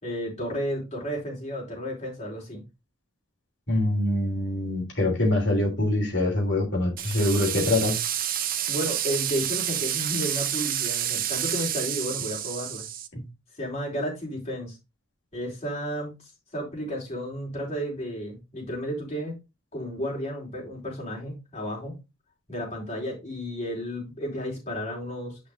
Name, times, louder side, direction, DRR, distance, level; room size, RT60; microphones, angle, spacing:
voice 1, 0.0-2.6 8.7-12.9 13.5-14.8 15.3-19.4 19.7-22.0 22.5-25.4, equal, 30° left, 4.0 m, -32 dB
voice 2, 3.7-8.0 13.1-13.2, left 1 dB, 55° left, 3.0 m, -24 dB
sound 1, 7.0-13.1, right 11 dB, 40° right, 0.6 m, -29 dB
10.0 x 5.3 x 2.5 m
head